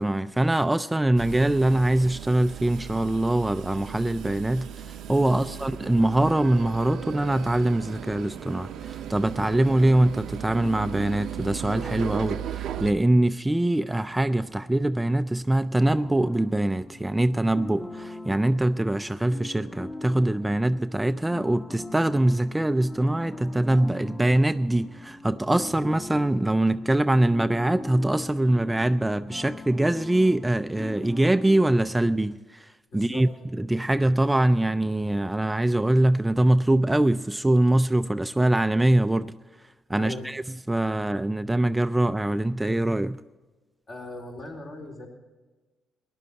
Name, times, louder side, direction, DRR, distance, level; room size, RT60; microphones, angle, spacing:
voice 1, 0.0-39.3 39.9-40.4 40.7-43.2, right 1 dB, 10° right, 0.3 m, -23 dB
sound 1, 1.2-12.9, right 9 dB, 75° right, 0.6 m, -36 dB
sound 2, 15.8-31.8, left 2 dB, 30° left, 1.7 m, -41 dB
voice 2, 32.9-33.3 40.0-40.3 43.9-45.1, left 2 dB, 50° left, 3.8 m, -38 dB
15.0 x 11.0 x 5.5 m
cardioid pair, 90°, 0 cm